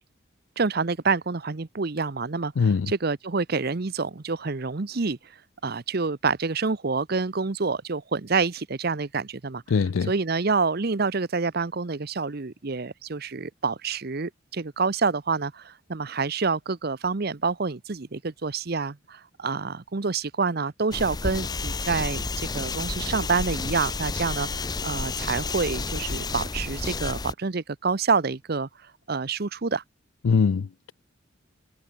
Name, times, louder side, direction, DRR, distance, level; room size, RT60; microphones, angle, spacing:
voice 1, 0.6-5.2 5.6-9.6 10.1-22.3 22.5-24.5 24.8-28.7 29.1-29.8, right 4 dB, 50° right, 0.8 m, -27 dB
voice 2, 2.6-2.9 9.7-10.1 30.2-30.9, left 5 dB, 85° left, 0.4 m, -22 dB
sound 1, 20.9-27.3, left 3 dB, 20° left, 0.6 m, -31 dB
head